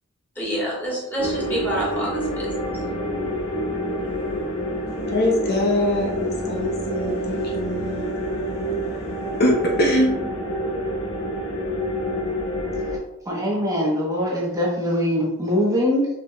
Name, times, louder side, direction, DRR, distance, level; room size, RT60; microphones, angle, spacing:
voice 1, 0.3-2.5, equal, 10° left, 1.4 m, -27 dB
sound 1, 1.2-13.0, equal, 90° left, 1.2 m, -27 dB
voice 2, 5.1-8.1 9.4-10.1, left 1 dB, 50° left, 0.7 m, -22 dB
voice 3, 13.3-16.1, equal, 15° right, 0.8 m, -22 dB
4.6 x 3.6 x 2.2 m
head